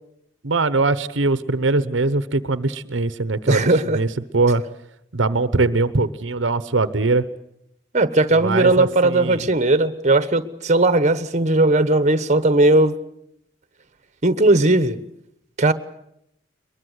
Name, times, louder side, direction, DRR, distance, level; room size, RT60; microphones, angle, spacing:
voice 1, 0.4-4.6 5.1-7.3 8.4-9.5, right 3 dB, 75° right, 14 dB, 1.0 m, -21 dB
voice 2, 3.5-4.0 7.9-12.9 14.2-15.0 15.6-15.7, right 2 dB, 40° right, 13 dB, 1.2 m, -17 dB
23.0 x 22.0 x 8.1 m, 0.77 s
head